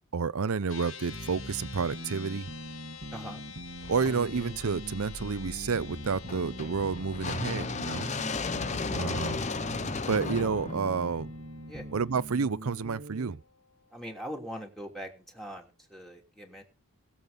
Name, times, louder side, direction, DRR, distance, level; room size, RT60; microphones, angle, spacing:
voice 1, 0.1-2.5 3.9-8.1 8.9-9.4 10.1-11.3 11.9-13.4, right 5 dB, 75° right, 0.6 m, -30 dB
sound 1, 0.7-14.2, left 7 dB, 65° left, 1.4 m, -49 dB
sound 2, 1.1-13.4, right 1 dB, 50° right, 1.3 m, -43 dB
voice 2, 3.1-3.4 11.7-11.9 13.9-16.6, equal, ahead, 3.0 m, -41 dB
sound 3, 3.8-11.9, left 4 dB, 30° left, 0.7 m, -36 dB
20.5 x 7.4 x 5.2 m
head